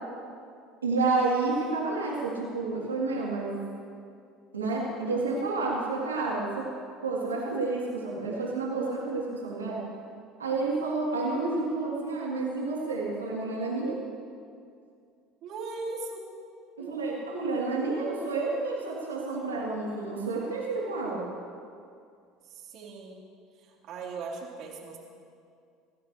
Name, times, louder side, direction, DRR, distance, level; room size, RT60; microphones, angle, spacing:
voice 1, 0.8-3.6 4.5-6.7 7.0-9.8 10.4-14.0 16.8-21.3, right 3 dB, 90° right, -5 dB, 3.5 m, -30 dB
voice 2, 15.4-16.2 16.8-16.9 22.4-23.2 23.6-25.0, right 3 dB, 55° right, -3 dB, 4.4 m, -39 dB
25.0 x 16.5 x 3.4 m, 2.3 s
hypercardioid pair, 70°, 0 cm